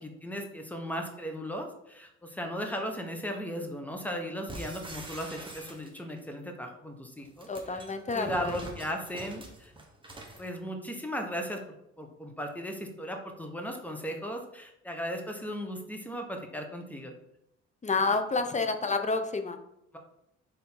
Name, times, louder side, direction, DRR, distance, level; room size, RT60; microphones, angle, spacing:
voice 1, 0.0-7.8 8.1-9.7 10.4-11.6 12.0-17.1, equal, 5° left, 3 dB, 1.1 m, -37 dB
sound 1, 4.5-6.2 7.2-10.5, right 1 dB, 15° right, 1.2 m, -44 dB
voice 2, 7.5-8.7 17.8-19.6, left 3 dB, 25° left, 7 dB, 0.7 m, -29 dB
4.6 x 3.7 x 5.5 m, 0.81 s
cardioid pair, 90°, 30 cm